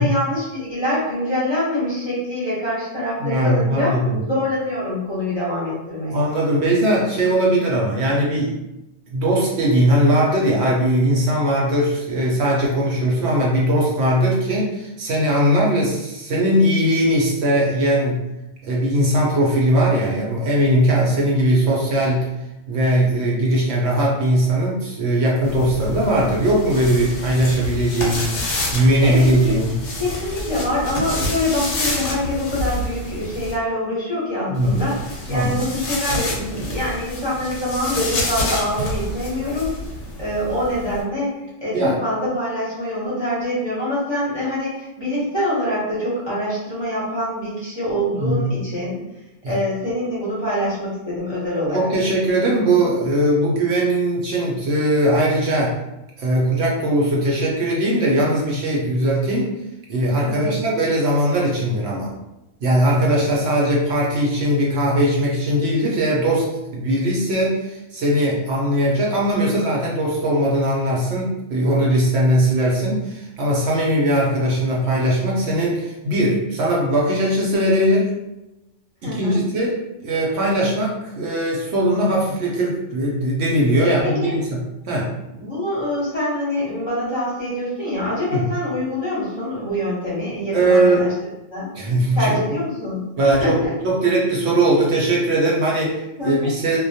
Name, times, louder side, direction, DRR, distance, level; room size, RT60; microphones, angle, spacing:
voice 1, 0.0-3.9 4.2-6.2 29.0-29.5 29.9-34.9 35.3-39.7 40.2-49.0 49.5-51.9 60.2-60.5 79.0-79.4 83.8-84.3 85.4-91.1 91.5-91.7 92.1-93.7 96.2-96.5, left 1 dB, 25° left, -9 dB, 0.7 m, -25 dB
voice 2, 3.2-4.2 6.1-8.6 9.1-18.2 18.6-22.3 22.7-29.8 34.5-34.8 35.3-35.6 41.7-42.0 48.2-48.5 49.4-49.6 51.7-55.8 56.2-59.5 59.9-62.1 62.6-78.1 79.0-79.8 80.0-85.1 88.3-88.5 90.5-91.1 91.8-92.6 93.2-96.8, right 1 dB, 65° right, -3 dB, 0.8 m, -19 dB
sound 1, 25.4-33.5 34.5-41.0, left 1 dB, 70° left, 0.9 m, -28 dB
2.2 x 2.1 x 2.6 m, 0.96 s
omnidirectional pair, 1.3 m